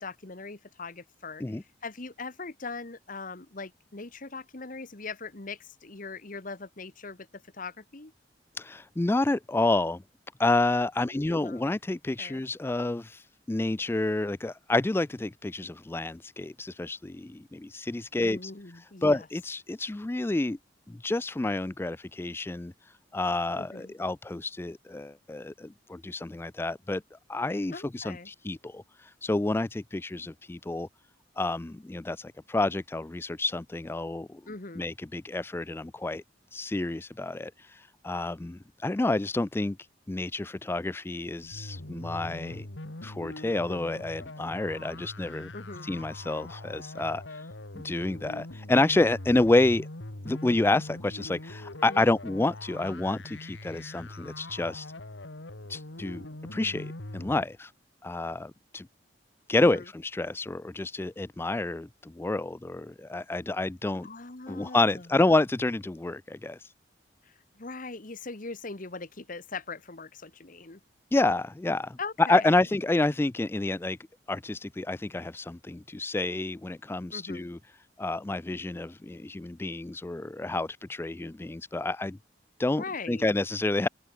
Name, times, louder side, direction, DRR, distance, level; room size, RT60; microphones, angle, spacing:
voice 1, 0.0-8.1 11.0-11.6 12.2-12.4 18.1-19.3 23.5-23.9 27.7-28.3 34.5-34.8 45.5-45.9 51.9-52.1 59.6-59.9 64.0-65.1 67.2-70.8 72.0-72.6 77.1-77.5 82.8-83.2, left 3 dB, 50° left, 1.6 m, -41 dB
voice 2, 8.6-10.0 10.4-18.5 19.0-20.6 21.0-22.7 23.1-27.0 27.3-30.9 31.4-34.4 34.8-36.2 36.5-39.8 40.1-42.7 43.0-45.5 45.8-47.5 47.8-49.9 50.2-54.9 55.7-56.2 56.5-57.7 58.0-58.9 59.5-64.1 64.5-66.7 71.1-74.0 74.3-77.6 78.0-82.2 82.6-83.9, left 2 dB, 15° left, 0.3 m, -29 dB
sound 1, 41.4-57.4, left 1 dB, 85° left, 2.4 m, -42 dB
open air
head